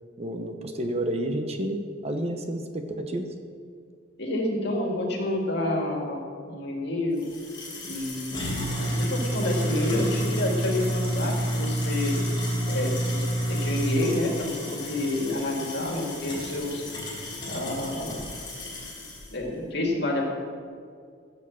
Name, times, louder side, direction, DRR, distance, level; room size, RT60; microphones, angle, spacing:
voice 1, 0.2-3.3, right 1 dB, 35° right, 5 dB, 1.0 m, -30 dB
voice 2, 4.2-7.3 7.8-12.1 12.7-16.8 17.4-18.2 19.3-20.3, left 1 dB, 60° left, 0 dB, 2.5 m, -29 dB
sound 1, 7.2-19.3, equal, 25° left, 3.3 m, -30 dB
14.5 x 7.2 x 7.4 m, 2.2 s
head